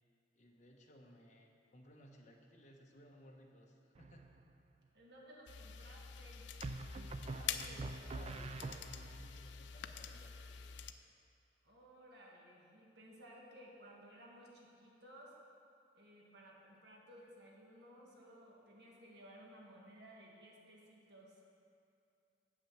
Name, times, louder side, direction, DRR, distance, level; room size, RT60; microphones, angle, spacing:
voice 1, 0.4-4.2 7.4-10.7, left 1 dB, 40° left, 0 dB, 1.0 m, -60 dB
sound 1, 4.0-4.5 6.6-9.3, right 3 dB, 35° right, 0.3 m, -45 dB
voice 2, 4.9-6.5 11.6-15.4 15.9-21.4, equal, 65° right, -2 dB, 1.6 m, -58 dB
sound 2, 5.5-10.9, left 7 dB, 75° left, 0.4 m, -47 dB
7.7 x 6.1 x 7.3 m, 2.5 s
head